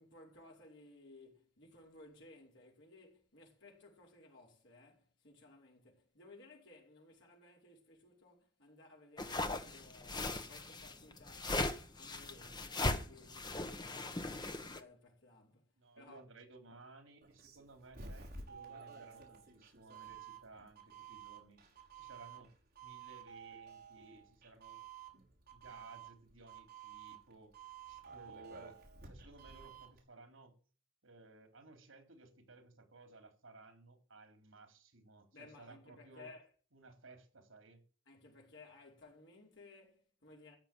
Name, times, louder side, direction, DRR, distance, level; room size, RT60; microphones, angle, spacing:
voice 1, 0.0-15.7 16.0-16.2 35.3-36.5 38.1-40.6, left 2 dB, 60° left, 5.1 m, -59 dB
sound 1, 9.2-14.8, left 2 dB, 20° left, 1.0 m, -38 dB
voice 2, 15.8-21.6 22.0-22.5 22.8-24.8 25.5-27.6 27.9-28.8 29.0-30.6 31.0-36.3 36.7-37.8, right 3 dB, 80° right, 3.4 m, -58 dB
Doorbell, 17.2-30.0, right 6 dB, 50° right, 5.9 m, -52 dB
15.0 x 7.0 x 9.0 m
head